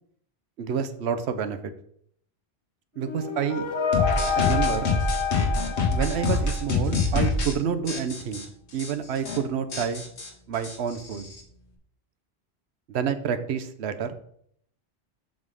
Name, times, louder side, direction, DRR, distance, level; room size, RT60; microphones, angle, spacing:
voice 1, 0.6-1.7 3.0-3.7 4.4-4.9 5.9-8.4 8.7-10.1 10.5-11.3 12.9-14.1, right 7 dB, 75° right, 10 dB, 1.0 m, -28 dB
sound 1, 3.0-6.9, left 7 dB, 30° left, 0.7 m, -28 dB
sound 2, 3.9-7.5 7.9-8.4 8.8-8.9 9.2-9.4 9.7-11.4, left 3 dB, 80° left, 1.5 m, -26 dB
7.4 x 3.6 x 6.3 m, 0.67 s
omnidirectional pair, 1.1 m